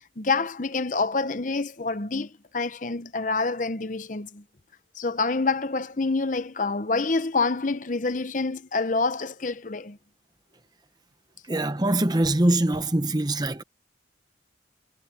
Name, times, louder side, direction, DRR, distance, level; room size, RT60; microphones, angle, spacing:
voice 1, 0.2-4.4 5.0-10.0, left 3 dB, 40° left, 0.8 m, -27 dB
voice 2, 11.5-13.6, right 1 dB, 20° right, 0.9 m, -23 dB
head